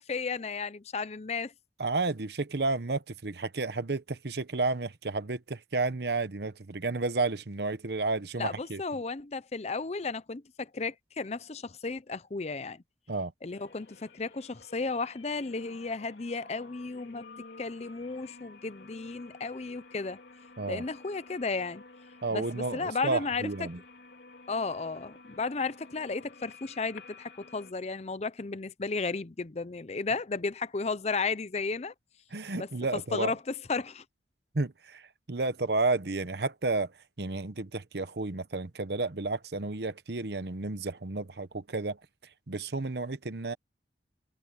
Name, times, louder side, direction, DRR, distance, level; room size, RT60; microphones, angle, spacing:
voice 1, 0.0-1.5 8.4-12.8 13.4-17.2 17.6-20.2 20.7-21.8 22.3-23.5 24.5-31.9 32.5-32.7 33.1-34.0, left 4 dB, 40° left, 0.6 m, -34 dB
voice 2, 1.8-8.8 13.1-13.3 20.6-20.8 22.2-23.8 32.3-33.3 34.5-42.0 42.5-43.5, right 3 dB, 65° right, 1.0 m, -31 dB
sound 1, 13.5-27.7, left 3 dB, 85° left, 3.1 m, -52 dB
head